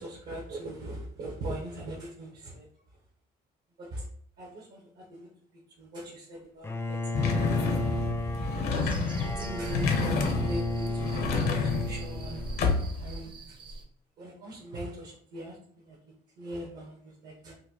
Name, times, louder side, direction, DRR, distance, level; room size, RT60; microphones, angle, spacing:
voice 1, 0.0-2.7 3.8-4.1 4.4-5.3 5.8-7.6 8.7-10.2 10.5-12.4 13.0-13.6 14.2-16.0 16.4-17.5, right 1 dB, 65° right, -3 dB, 1.0 m, -41 dB
Bowed string instrument, 6.6-12.8, left 2 dB, 15° left, 0.5 m, -34 dB
sound 1, 7.1-13.1, left 4 dB, 70° left, 0.7 m, -29 dB
sound 2, 8.7-13.8, right 2 dB, 30° right, 0.6 m, -44 dB
4.1 x 2.2 x 2.9 m, 0.63 s
cardioid pair, 110°, 17 cm